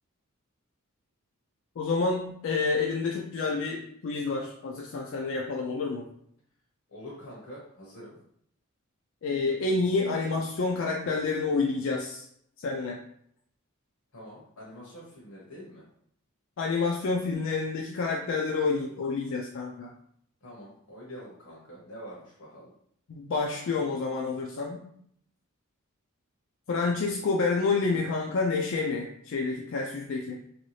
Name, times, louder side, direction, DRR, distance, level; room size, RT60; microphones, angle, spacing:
voice 1, 1.8-6.1 9.2-12.2 12.6-13.0 16.6-19.9 23.1-24.8 26.7-30.4, left 4 dB, 60° left, -1 dB, 0.4 m, -28 dB
voice 2, 6.9-8.2 14.1-15.8 20.4-22.7, equal, 75° left, -6 dB, 0.9 m, -45 dB
3.1 x 2.7 x 3.1 m, 0.69 s
head